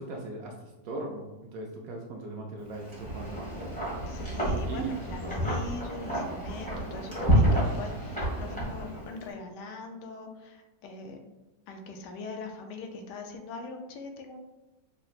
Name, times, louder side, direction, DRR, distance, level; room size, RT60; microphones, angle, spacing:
voice 1, 0.0-3.5 4.6-4.9, right 2 dB, 70° right, 1 dB, 0.9 m, -39 dB
Wind, 2.7-9.2, right 1 dB, 5° left, 1.2 m, -29 dB
voice 2, 4.1-11.2 11.7-14.4, left 3 dB, 75° left, 4 dB, 1.2 m, -41 dB
5.1 x 2.9 x 2.4 m, 1.0 s
omnidirectional pair, 1.9 m